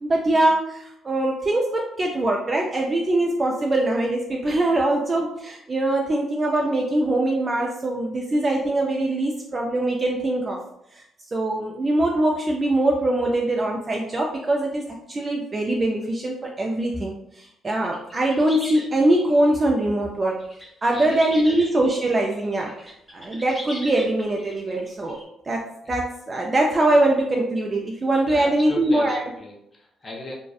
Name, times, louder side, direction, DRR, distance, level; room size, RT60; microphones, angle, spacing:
voice 1, 0.0-10.6 10.9-11.0 11.3-20.4 20.8-25.2 25.5-29.2, right 1 dB, 30° right, -1 dB, 0.3 m, -22 dB
sound 1, 17.8-19.5 20.4-25.2, equal, ahead, 0.9 m, -40 dB
voice 2, 28.3-30.3, left 1 dB, 30° left, -2 dB, 0.6 m, -36 dB
2.6 x 2.1 x 2.3 m, 0.79 s
cardioid pair, 90°, 0 cm